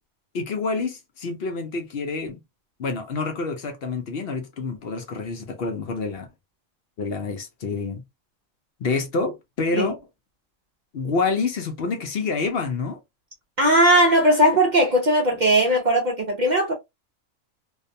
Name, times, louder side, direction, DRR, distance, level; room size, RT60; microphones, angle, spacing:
voice 1, 0.3-2.4 2.8-6.3 7.0-8.0 8.8-10.0 10.9-13.0, left 4 dB, 60° left, 0.7 m, -27 dB
voice 2, 13.6-16.7, right 1 dB, 50° right, 0.5 m, -18 dB
2.5 x 2.2 x 2.5 m
omnidirectional pair, 1.4 m